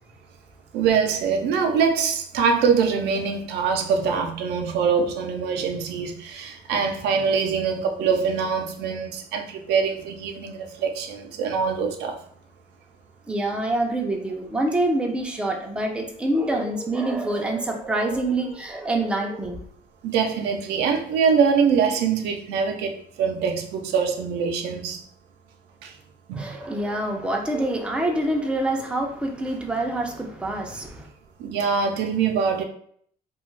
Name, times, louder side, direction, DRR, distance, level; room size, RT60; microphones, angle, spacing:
voice 1, 0.7-12.2 20.0-25.0 25.8-25.9 26.3-26.5 31.4-32.6, right 6 dB, 85° right, 0.5 m, -23 dB
voice 2, 13.3-19.6 26.3-31.1, right 1 dB, 5° right, 0.4 m, -26 dB
2.4 x 2.3 x 3.1 m
cardioid pair, 110°, 17 cm